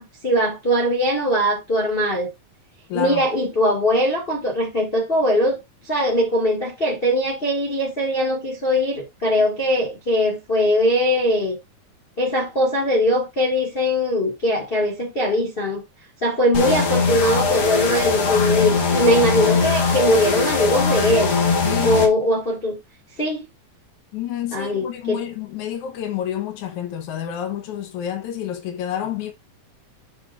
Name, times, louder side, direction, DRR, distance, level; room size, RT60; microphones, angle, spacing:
voice 1, 0.0-2.3 2.9-5.6 5.8-11.6 12.2-15.8 16.2-21.3 21.8-22.8 23.2-23.4 24.5-25.2, equal, 25° left, 1.5 m, -21 dB
voice 2, 2.9-3.3 21.6-22.0 24.1-29.3, left 10 dB, 70° left, 2.4 m, -29 dB
sound 1, 16.5-22.1, left 4 dB, 45° left, 1.3 m, -20 dB
9.5 x 6.3 x 2.5 m
omnidirectional pair, 3.7 m